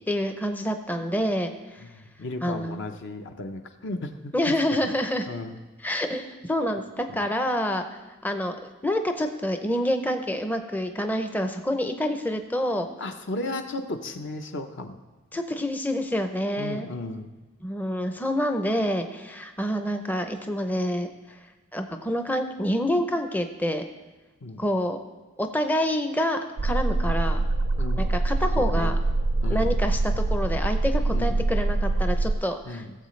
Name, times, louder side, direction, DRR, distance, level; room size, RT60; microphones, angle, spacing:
voice 1, 0.0-1.8 2.4-2.8 4.3-5.3 5.8-7.8 8.2-8.6 8.8-12.9 15.3-16.9 17.6-21.1 21.7-23.9 24.6-25.0 25.4-27.4 28.0-28.9 29.5-32.8, equal, 10° left, 6 dB, 0.5 m, -27 dB
voice 2, 1.9-4.6 4.8-4.9 5.3-5.6 7.1-7.2 13.0-14.9 16.6-17.3 24.4-24.6 27.8-28.1 28.6-28.9 29.4-29.8 31.1-31.4 32.7-32.9, left 2 dB, 60° left, 6 dB, 0.7 m, -34 dB
sound 1, 26.6-32.4, right 2 dB, 70° right, 0.5 m, -24 dB
16.5 x 7.5 x 3.2 m, 1.2 s
head